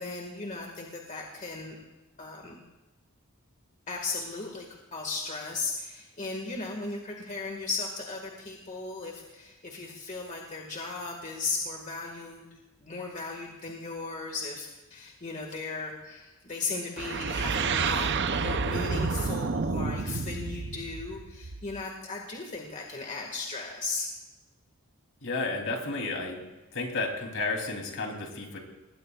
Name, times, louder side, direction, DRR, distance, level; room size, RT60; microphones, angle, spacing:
voice 1, 0.0-1.8 2.2-2.6 3.9-4.7 4.9-12.5 12.8-24.1, left 3 dB, 35° left, 0 dB, 1.9 m, -36 dB
sound 1, 17.0-21.8, right 5 dB, 50° right, 0.7 m, -30 dB
voice 2, 25.2-26.4 26.7-28.6, left 3 dB, 60° left, 1 dB, 3.2 m, -32 dB
25.5 x 20.0 x 2.4 m, 1.1 s
head